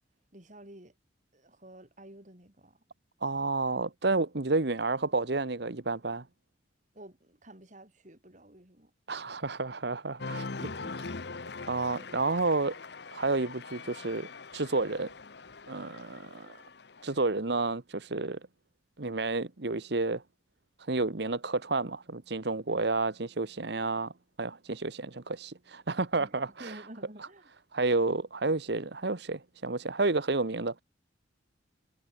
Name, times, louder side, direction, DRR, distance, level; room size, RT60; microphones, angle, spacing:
voice 1, 0.3-0.9 1.3-2.8 6.9-8.9 10.7-10.9 26.2-27.5, right 1 dB, 40° right, 4.1 m, -50 dB
voice 2, 3.2-6.2 9.1-10.4 11.7-12.8 13.1-15.1 15.7-16.6 17.0-18.4 19.0-20.2 20.8-24.1 24.4-26.8 27.7-30.8, right 3 dB, 60° right, 1.2 m, -30 dB
Cheering, 10.2-17.2, left 3 dB, 60° left, 1.0 m, -42 dB
head